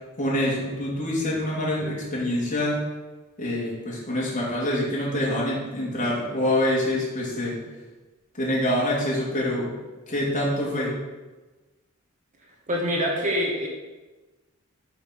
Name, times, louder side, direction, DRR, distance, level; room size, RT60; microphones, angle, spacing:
voice 1, 0.2-2.8 3.4-7.6 8.4-9.7 10.1-10.9, left 1 dB, 35° left, -6 dB, 2.6 m, -26 dB
voice 2, 12.7-13.7, equal, 35° right, -1 dB, 1.2 m, -25 dB
7.1 x 4.7 x 6.0 m, 1.2 s
head